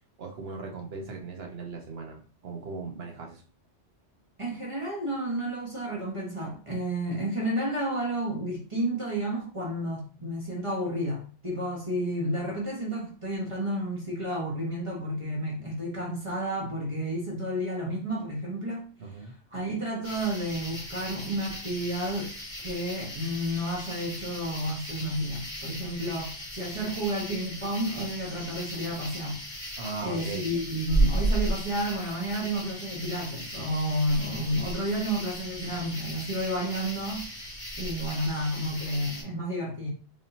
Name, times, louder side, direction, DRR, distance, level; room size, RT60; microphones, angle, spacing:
voice 1, 0.2-3.4 19.0-19.3 29.8-30.5, right 4 dB, 65° right, 1.1 m, -38 dB
voice 2, 4.4-18.9 19.5-22.3 22.6-29.6 30.0-37.3 37.8-39.9, right 1 dB, 30° right, 1.3 m, -31 dB
sound 1, 20.0-39.2, right 1 dB, 25° left, 2.4 m, -35 dB
4.1 x 3.5 x 2.7 m
omnidirectional pair, 1.2 m